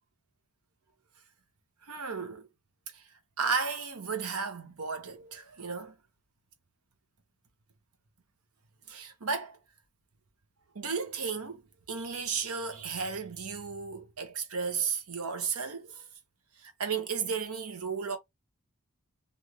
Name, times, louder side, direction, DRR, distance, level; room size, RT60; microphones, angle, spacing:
voice 1, 1.8-2.5 2.9-3.0 3.4-5.9 8.9-9.6 10.7-11.6 11.9-16.0 16.6-18.2, right 5 dB, 80° right, 1.0 m, -34 dB
3.1 x 2.6 x 2.4 m
head